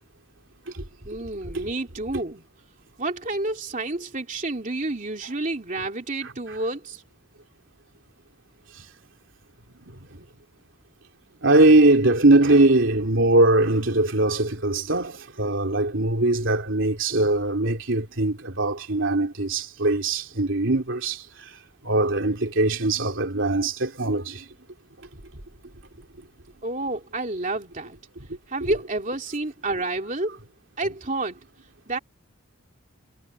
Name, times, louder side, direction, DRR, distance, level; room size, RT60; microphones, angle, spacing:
voice 1, 1.0-2.4 3.0-7.0 26.6-28.0 28.5-30.4 30.8-31.4 31.9-32.0, right 2 dB, 40° right, 3.0 m, -29 dB
voice 2, 11.4-21.2 21.8-24.4, right 2 dB, 65° right, 3.0 m, -21 dB
head